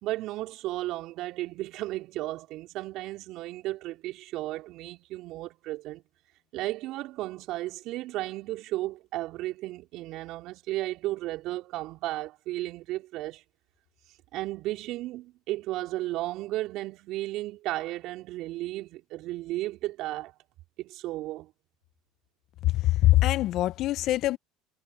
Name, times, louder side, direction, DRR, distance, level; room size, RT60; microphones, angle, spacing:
voice 1, 0.0-6.0 6.5-13.4 14.3-20.3 20.8-21.5, right 17 dB, 60° right, 4.0 m, -34 dB
voice 2, 22.6-24.4, left 16 dB, 55° left, 1.1 m, -23 dB
hypercardioid pair, 70°, 0 cm